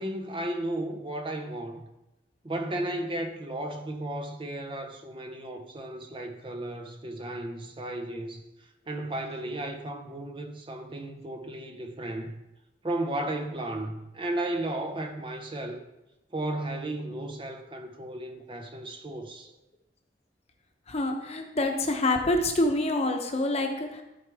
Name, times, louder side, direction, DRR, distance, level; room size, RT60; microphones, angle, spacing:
voice 1, 0.0-1.9 2.4-12.4 12.8-15.8 16.3-19.5, right 1 dB, 30° right, 0.7 m, -34 dB
voice 2, 20.9-24.0, left 2 dB, 35° left, 1.0 m, -26 dB
14.0 x 4.7 x 3.5 m
head